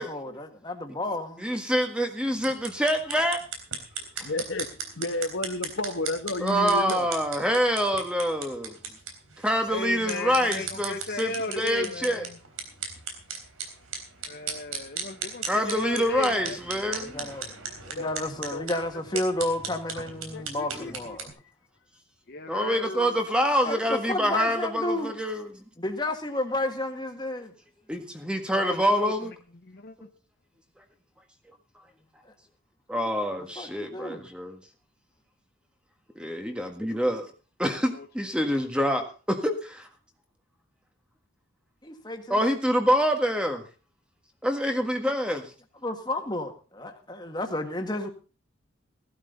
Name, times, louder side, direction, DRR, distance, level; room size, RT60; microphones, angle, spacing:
voice 1, 0.0-1.5 16.9-17.5 17.8-21.3 23.6-25.1 25.8-27.5 32.2-32.3 33.6-34.3 41.8-42.4 45.8-48.1, left 1 dB, 20° left, 5 dB, 1.8 m, -31 dB
voice 2, 1.4-3.4 4.2-4.3 6.4-8.8 9.4-12.3 15.5-17.3 20.7-20.9 22.5-25.6 27.9-29.3 30.0-30.1 32.9-34.6 36.1-37.3 37.6-39.9 42.3-43.6 44.4-45.5, equal, 5° right, 5 dB, 1.6 m, -26 dB
sound 1, 2.3-21.3, right 6 dB, 85° right, 3.5 m, -38 dB
voice 3, 4.0-7.1 17.9-18.8 19.1-19.2 19.9-20.0 20.3-20.5, left 2 dB, 70° left, 7 dB, 1.5 m, -32 dB
voice 4, 9.7-12.4 14.3-16.6 20.6-21.2 22.3-23.2 28.5-29.3 29.6-30.1 37.9-38.1 38.4-38.6, left 3 dB, 50° left, 6 dB, 0.8 m, -36 dB
16.5 x 12.0 x 4.0 m, 0.34 s
head